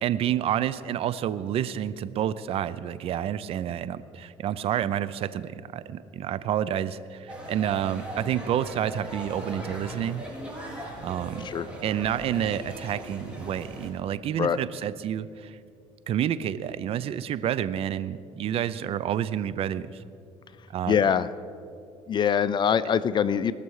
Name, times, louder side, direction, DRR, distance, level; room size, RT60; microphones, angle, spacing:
voice 1, 0.0-10.3 11.0-11.5 11.8-15.6 16.1-20.0 20.7-21.0, right 10 dB, 55° right, 15 dB, 0.5 m, -29 dB
sound 1, 7.3-13.9, right 1 dB, 10° right, 3.6 m, -39 dB
voice 2, 20.9-21.3 22.1-23.5, left 8 dB, 40° left, 15 dB, 0.5 m, -23 dB
20.0 x 6.8 x 4.8 m, 2.4 s
supercardioid pair, 80°, 12 cm